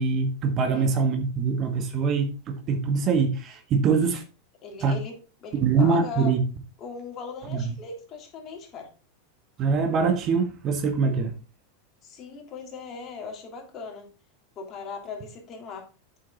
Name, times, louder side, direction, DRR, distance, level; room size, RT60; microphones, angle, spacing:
voice 1, 0.0-4.2 4.8-4.9 5.6-6.4 7.5-7.6 9.6-11.3, right 5 dB, 40° right, 6 dB, 1.6 m, -23 dB
voice 2, 0.6-1.1 4.6-5.2 5.4-6.3 6.8-8.9 12.0-14.1 14.5-15.9, left 4 dB, 40° left, 1 dB, 3.1 m, -39 dB
8.3 x 6.2 x 3.9 m, 0.33 s
hypercardioid pair, 100°, 0 cm